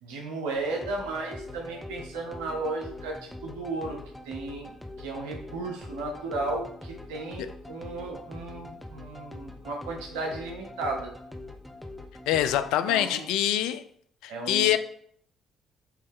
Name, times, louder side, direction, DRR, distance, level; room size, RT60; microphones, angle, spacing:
voice 1, 0.0-4.0 4.2-4.7 5.0-11.1 12.9-13.3 14.3-14.8, right 3 dB, 80° right, 0.8 m, -34 dB
sound 1, 0.5-12.7, left 2 dB, 5° left, 1.0 m, -43 dB
voice 2, 12.3-13.8 14.2-14.8, left 12 dB, 75° left, 0.4 m, -25 dB
8.3 x 3.2 x 3.6 m
hypercardioid pair, 50°, 0 cm